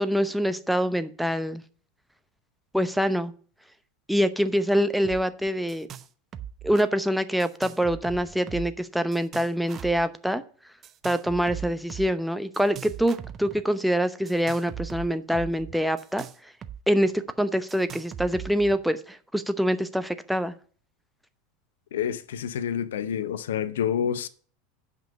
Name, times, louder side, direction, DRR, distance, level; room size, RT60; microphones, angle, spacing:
voice 1, 0.0-1.6 2.7-3.3 4.1-5.9 6.6-10.4 11.0-16.3 16.9-17.1 17.4-20.5, equal, ahead, 0.8 m, -25 dB
sound 1, 5.0-5.2 5.5-6.1 6.3-6.9 7.4-8.8 9.1-10.0 10.8-12.1 12.5-13.6 14.3-16.8 17.0-17.1 17.7-18.8, right 9 dB, 35° right, 0.8 m, -39 dB
voice 2, 21.9-24.3, left 8 dB, 75° left, 0.6 m, -28 dB
9.0 x 5.4 x 6.7 m
figure-of-eight pair, 80°, 0 cm